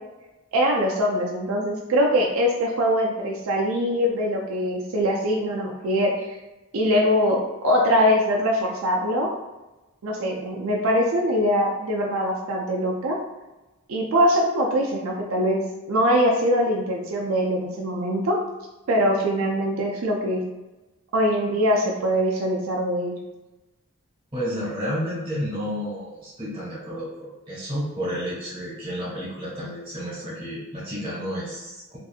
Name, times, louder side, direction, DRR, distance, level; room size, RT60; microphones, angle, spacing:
voice 1, 0.5-6.4 6.7-9.3 10.0-13.2 13.9-18.4 18.9-20.4 21.1-23.2, equal, 80° right, -1 dB, 0.4 m, -22 dB
voice 2, 24.3-32.0, equal, 25° right, -8 dB, 1.3 m, -31 dB
2.6 x 2.6 x 2.4 m, 1.1 s
head